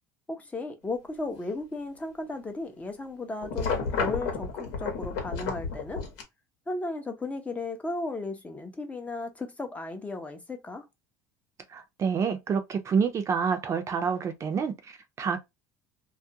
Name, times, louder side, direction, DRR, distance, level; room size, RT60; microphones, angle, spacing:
voice 1, 0.3-6.0 6.7-10.8, left 2 dB, 15° left, 0.5 m, -35 dB
sound 1, 3.4-6.2, left 5 dB, 80° left, 0.9 m, -31 dB
voice 2, 11.7-15.4, right 6 dB, 35° right, 0.5 m, -28 dB
2.3 x 2.1 x 2.7 m
supercardioid pair, 115°, 9 cm